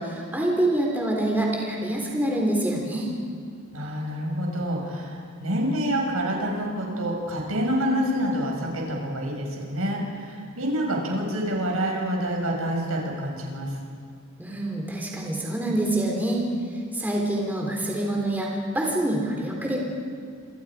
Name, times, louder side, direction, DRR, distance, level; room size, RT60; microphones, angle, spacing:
voice 1, 0.0-3.1 14.4-16.4 16.9-19.8, right 1 dB, 10° right, -1 dB, 3.5 m, -26 dB
voice 2, 3.7-13.7, equal, 85° right, 0 dB, 6.1 m, -27 dB
27.5 x 26.5 x 5.0 m, 2.2 s
head